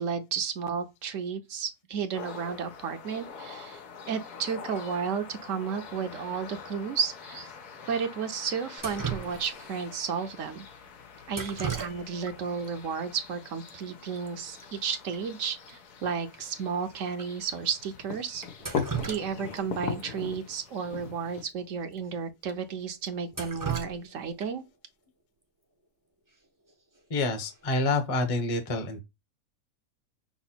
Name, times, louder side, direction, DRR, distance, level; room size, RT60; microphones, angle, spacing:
voice 1, 0.0-3.8 4.1-7.5 7.9-10.6 11.3-18.4 19.1-24.6, right 6 dB, 65° right, 0.9 m, -33 dB
sound 1, 2.1-21.4, left 6 dB, 85° left, 1.5 m, -42 dB
Drip, 8.8-9.8 11.3-12.3 12.6-12.7 13.7-13.8 14.0-14.3 14.6-14.7 15.1-15.2 15.7-15.8 16.3-16.4 17.1-17.3 18.4-19.6 20.0-20.1 21.4-21.5 21.9-22.0 22.5-22.6 23.1-24.7 26.7-27.0 27.4-27.8, right 6 dB, 25° right, 0.4 m, -36 dB
voice 2, 27.1-29.0, left 2 dB, 30° left, 0.7 m, -27 dB
5.9 x 2.1 x 4.2 m
omnidirectional pair, 1.6 m